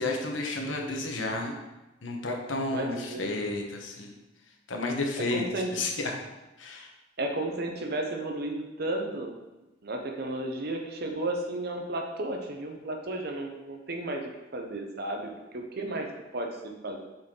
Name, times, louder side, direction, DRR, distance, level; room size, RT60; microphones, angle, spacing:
voice 1, 0.0-1.5 2.0-4.1 4.7-5.4 5.7-6.1 6.6-6.9, left 2 dB, 85° left, 1 dB, 1.2 m, -31 dB
voice 2, 2.7-3.3 5.2-5.7 7.2-9.4 9.8-16.1 16.3-17.1, right 2 dB, 55° right, 3 dB, 0.8 m, -33 dB
7.6 x 4.3 x 3.8 m, 1.0 s
head